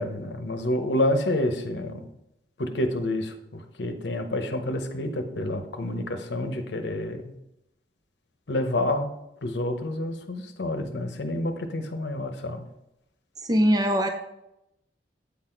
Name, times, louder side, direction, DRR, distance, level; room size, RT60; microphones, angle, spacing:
voice 1, 0.0-2.1 2.6-7.3 8.5-9.1 9.4-12.6, left 1 dB, 75° left, 6 dB, 0.8 m, -28 dB
voice 2, 13.4-14.1, equal, 20° right, 4 dB, 0.5 m, -21 dB
8.3 x 4.1 x 4.4 m, 0.84 s
head